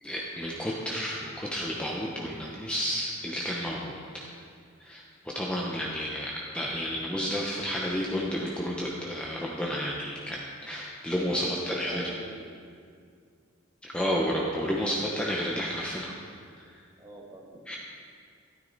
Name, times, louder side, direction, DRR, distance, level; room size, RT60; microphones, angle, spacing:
voice 1, 0.0-4.3 4.8-5.0 5.3-12.0 13.8-16.1 16.6-16.8 17.7-17.8, equal, 5° left, -4 dB, 0.9 m, -31 dB
voice 2, 11.1-12.6 17.0-17.7, right 1 dB, 20° right, -1 dB, 1.8 m, -43 dB
13.0 x 12.5 x 4.1 m, 2.2 s
head